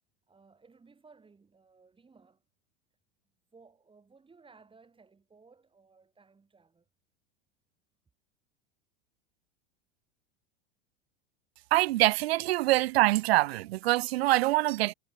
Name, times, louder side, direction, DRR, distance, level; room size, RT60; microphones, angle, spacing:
voice 1, 0.3-2.4 3.5-6.9, right 4 dB, 15° right, 4.3 m, -59 dB
voice 2, 11.7-14.9, right 18 dB, 75° right, 0.5 m, -25 dB
hypercardioid pair, 95°, 31 cm